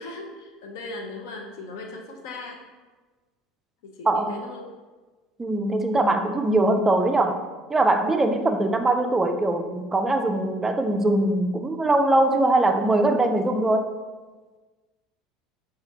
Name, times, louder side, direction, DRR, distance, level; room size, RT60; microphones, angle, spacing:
voice 1, 0.0-2.6 3.8-4.6, left 2 dB, 60° left, 2 dB, 0.5 m, -38 dB
voice 2, 4.1-4.4 5.4-7.4 7.7-13.9, right 2 dB, 15° right, 7 dB, 0.3 m, -22 dB
5.8 x 2.4 x 2.7 m, 1.3 s
figure-of-eight pair, 70°, 2 cm